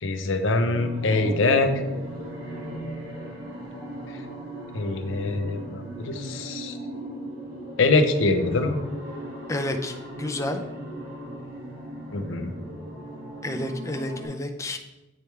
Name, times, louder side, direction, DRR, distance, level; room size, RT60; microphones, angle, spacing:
voice 1, 0.0-1.7 4.7-6.8 7.8-8.8 12.1-12.5, left 3 dB, 70° left, 7 dB, 0.6 m, -23 dB
sound 1, 0.7-14.3, right 1 dB, 45° right, 1.7 m, -37 dB
voice 2, 9.5-10.6 13.4-14.8, left 1 dB, 15° left, 5 dB, 0.4 m, -30 dB
8.4 x 3.3 x 4.5 m, 1.1 s
head